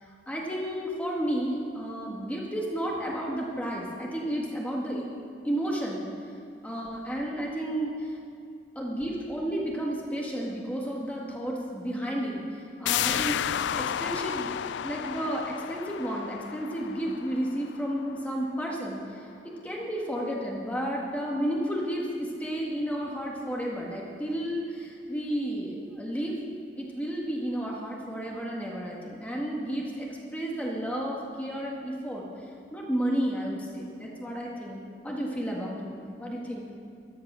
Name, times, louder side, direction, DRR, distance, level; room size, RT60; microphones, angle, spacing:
voice 1, 0.3-5.1 5.4-6.0 6.6-7.9 8.7-14.6 14.8-19.0 19.6-26.4 26.8-32.2 32.7-36.6, equal, 10° left, -3 dB, 1.7 m, -32 dB
sound 1, 12.9-18.3 18.7-18.8, left 10 dB, 70° left, 0.3 m, -32 dB
13.5 x 12.0 x 6.2 m, 2.4 s
head